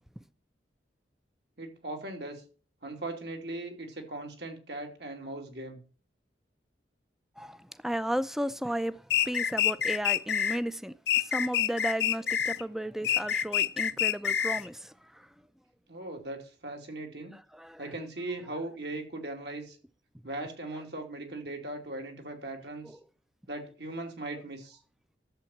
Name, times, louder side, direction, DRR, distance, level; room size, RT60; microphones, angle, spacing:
voice 1, 1.6-2.4 2.8-5.8 15.9-17.3 17.8-19.8 20.2-23.0 23.5-24.8, right 2 dB, 70° right, 3.1 m, -39 dB
voice 2, 7.4-14.9 17.5-17.8 22.8-23.0, equal, ahead, 0.5 m, -34 dB
sound 1, 9.1-10.6 11.1-12.6 13.0-14.7, left 9 dB, 70° left, 0.6 m, -27 dB
11.5 x 7.6 x 7.2 m
head